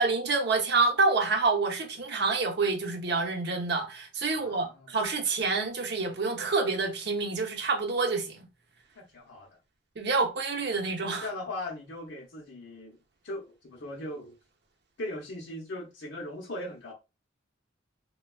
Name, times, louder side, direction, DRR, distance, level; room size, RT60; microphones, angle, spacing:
voice 1, 0.0-8.5 10.0-11.3, right 3 dB, 60° right, 0.7 m, -27 dB
voice 2, 4.3-4.9 9.0-9.5 11.2-13.0 13.2-14.4 15.0-16.9, left 1 dB, 65° left, 0.7 m, -39 dB
3.3 x 2.2 x 2.3 m
head